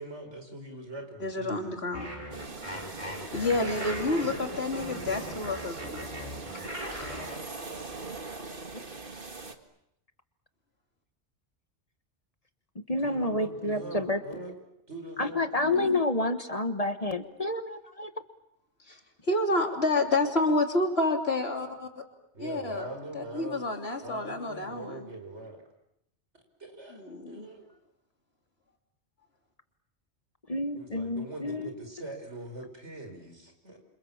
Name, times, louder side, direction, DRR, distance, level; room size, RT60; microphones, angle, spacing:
voice 1, 0.0-1.8 3.6-4.1 13.0-14.5 14.9-15.9 22.3-23.7 24.0-25.6 26.6-27.7 30.8-33.8, right 2 dB, 85° right, 5 dB, 5.7 m, -42 dB
voice 2, 1.2-2.1 3.3-6.0 15.6-16.0 18.9-21.9 22.4-22.9 23.1-25.1 26.9-27.5, left 2 dB, 65° left, 3 dB, 3.4 m, -29 dB
sound 1, 1.9-7.4, equal, 30° right, 5.5 m, -39 dB
sound 2, 2.3-9.6, right 3 dB, 50° right, 2.1 m, -41 dB
voice 3, 12.7-14.2 15.2-18.1 30.5-31.7, left 2 dB, 35° left, 9 dB, 1.5 m, -29 dB
28.5 x 26.5 x 7.3 m, 0.79 s
omnidirectional pair, 1.1 m